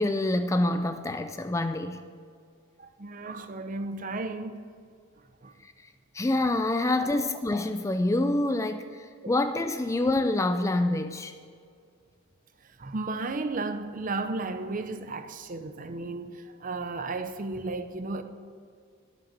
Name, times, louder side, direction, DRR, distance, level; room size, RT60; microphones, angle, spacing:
voice 1, 0.0-2.0 5.6-5.7 6.1-11.3, left 2 dB, 15° left, 0.3 m, -26 dB
voice 2, 2.8-4.6 5.4-5.5 7.0-7.1 9.2-9.3 12.8-18.2, right 3 dB, 40° right, 0.6 m, -34 dB
11.0 x 7.5 x 7.4 m
head